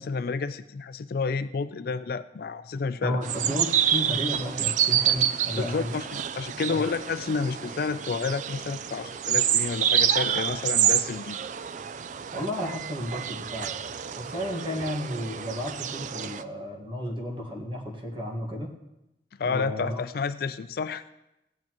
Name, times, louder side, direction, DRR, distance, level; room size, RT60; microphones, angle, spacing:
voice 1, 0.0-3.2 5.6-11.4 19.4-21.0, left 5 dB, 55° left, 13 dB, 0.4 m, -30 dB
voice 2, 3.0-6.0 6.7-6.8 12.3-13.7 14.1-18.7 19.4-20.0, equal, 30° right, 0 dB, 1.6 m, -33 dB
sound 1, 3.2-16.4, right 9 dB, 45° right, 0.3 m, -28 dB
16.0 x 9.4 x 3.0 m, 0.89 s
head